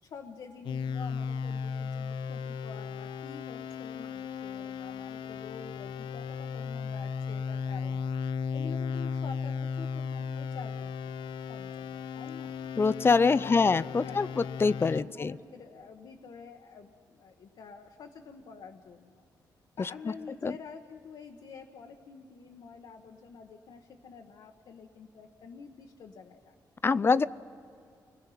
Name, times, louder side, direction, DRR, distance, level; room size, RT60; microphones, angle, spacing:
voice 1, 0.0-8.1 8.5-10.9 11.2-12.5 13.2-19.2 19.8-26.5, left 5 dB, 70° left, 2 dB, 1.1 m, -48 dB
sound 1, 0.6-15.0, left 6 dB, 90° left, 0.6 m, -36 dB
voice 2, 12.8-15.3 19.8-20.1 20.4-20.5 26.8-27.3, left 4 dB, 30° left, 17 dB, 0.4 m, -25 dB
29.5 x 20.0 x 5.8 m, 2.4 s
cardioid pair, 100°, 8 cm